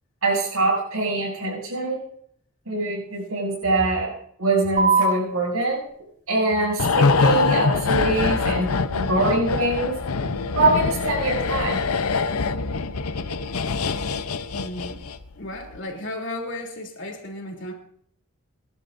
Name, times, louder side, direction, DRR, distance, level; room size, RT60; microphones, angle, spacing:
voice 1, 0.2-2.0 2.7-4.1 4.4-5.8 6.3-8.7 8.9-10.0 10.5-11.8, right 2 dB, 85° right, 0 dB, 6.9 m, -23 dB
sound 1, 4.8-11.8, right 4 dB, 40° right, 7.4 m, -30 dB
sound 2, 6.8-15.3 15.6-15.8, left 4 dB, 90° left, 0.8 m, -24 dB
voice 2, 14.5-15.0 15.3-17.7, left 1 dB, 55° left, 1 dB, 3.2 m, -34 dB
24.5 x 11.5 x 2.6 m, 0.64 s
head